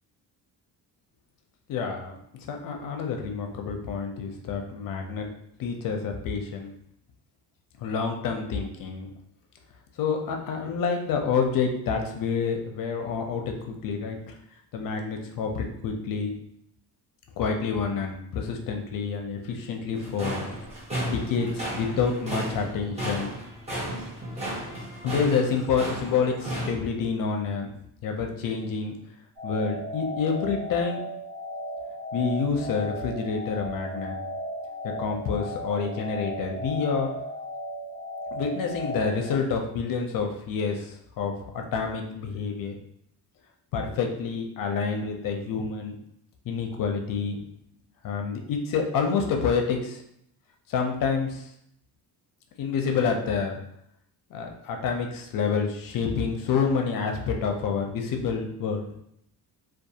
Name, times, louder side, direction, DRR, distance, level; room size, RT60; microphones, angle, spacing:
voice 1, 1.7-5.3 5.6-6.7 7.8-9.1 10.0-14.3 14.7-16.3 17.4-20.5 21.0-23.3 25.0-27.7 28.0-28.9 29.4-31.0 32.1-34.2 34.8-37.1 38.3-42.8 43.7-46.0 46.5-47.4 48.0-50.0 50.7-51.5 52.6-53.6 54.3-58.8, left 5 dB, 55° left, 3 dB, 0.5 m, -28 dB
sound 1, 19.9-26.7, equal, 15° right, 0.6 m, -34 dB
sound 2, 29.4-39.4, equal, 55° right, 1.4 m, -35 dB
2.3 x 2.3 x 2.7 m, 0.74 s
cardioid pair, 165°, 40 cm